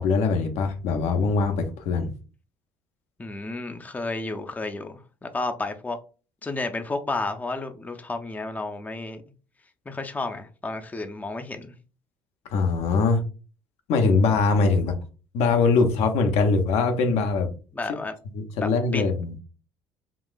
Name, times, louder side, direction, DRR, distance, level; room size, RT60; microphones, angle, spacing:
voice 1, 0.0-2.1 12.5-13.2 13.9-15.0 15.3-17.5 18.3-19.3, left 4 dB, 65° left, 0.6 m, -22 dB
voice 2, 3.2-6.0 6.4-9.2 9.9-11.7 17.7-18.1 18.6-19.0, left 3 dB, 15° left, 0.5 m, -32 dB
3.8 x 2.4 x 2.2 m
hypercardioid pair, 60°, 12 cm